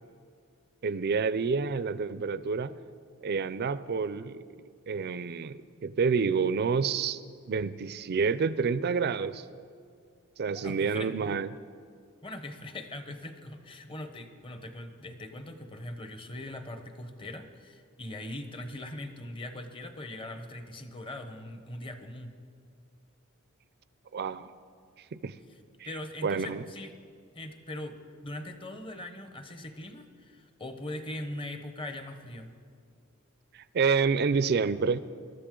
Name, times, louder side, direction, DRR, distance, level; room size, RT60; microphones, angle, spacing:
voice 1, 0.8-2.7 3.2-4.4 4.9-7.2 7.5-9.5 10.4-11.5 24.1-24.5 25.2-25.3 25.8-25.9 26.2-26.6 33.5-35.0, right 5 dB, 50° right, 15 dB, 0.4 m, -28 dB
voice 2, 10.5-11.1 12.2-22.4 25.8-26.9 27.3-32.5, left 1 dB, 25° left, 7 dB, 0.9 m, -41 dB
22.0 x 13.0 x 3.8 m, 2.3 s
head